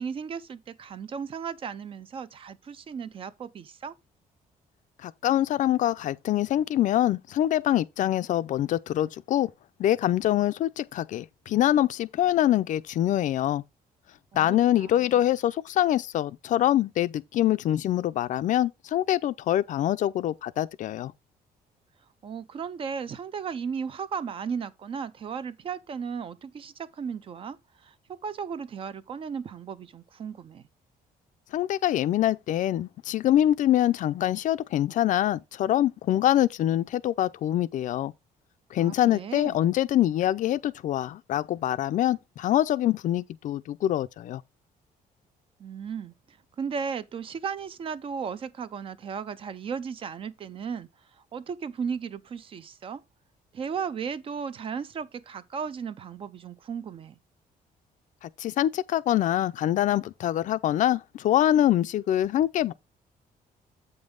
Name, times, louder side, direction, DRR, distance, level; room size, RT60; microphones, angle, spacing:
voice 1, 0.0-3.9 14.3-15.2 22.2-30.6 38.8-39.7 45.6-53.0 53.5-57.2, right 6 dB, 35° right, 0.5 m, -35 dB
voice 2, 5.0-9.5 9.8-13.6 14.3-21.1 31.5-38.1 38.7-44.4 58.2-62.7, left 12 dB, 55° left, 0.5 m, -24 dB
8.0 x 5.3 x 3.8 m
cardioid pair, 165°, 15 cm